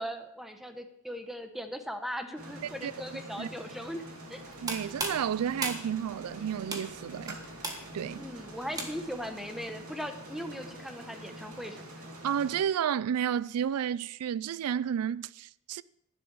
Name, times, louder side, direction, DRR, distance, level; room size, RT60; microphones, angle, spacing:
voice 1, 0.0-4.0 4.3-4.4 8.2-11.9, equal, ahead, 0.9 m, -39 dB
sound 1, 2.4-12.6, right 1 dB, 70° right, 2.7 m, -46 dB
sound 2, 4.4-9.3, right 2 dB, 15° right, 1.5 m, -38 dB
voice 2, 4.6-7.4 7.9-8.3 12.2-15.8, right 8 dB, 90° right, 0.4 m, -31 dB
11.5 x 10.5 x 4.7 m
head